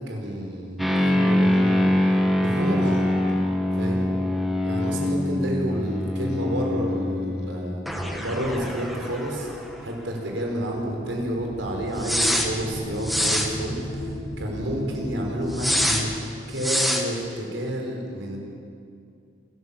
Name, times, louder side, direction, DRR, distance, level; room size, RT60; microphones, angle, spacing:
voice 1, 0.0-3.0 3.7-4.1 4.6-7.8 8.2-9.5 9.8-16.1 16.5-18.4, right 1 dB, 90° right, 0 dB, 4.7 m, -30 dB
sound 1, 0.8-10.0 10.2-10.3 12.0-12.5 13.0-13.5 15.5-16.0 16.6-17.0, left 1 dB, ahead, 1.8 m, -24 dB
sound 2, 10.9-16.0, left 1 dB, 70° left, 5.3 m, -34 dB
27.5 x 14.0 x 7.2 m, 2.4 s
head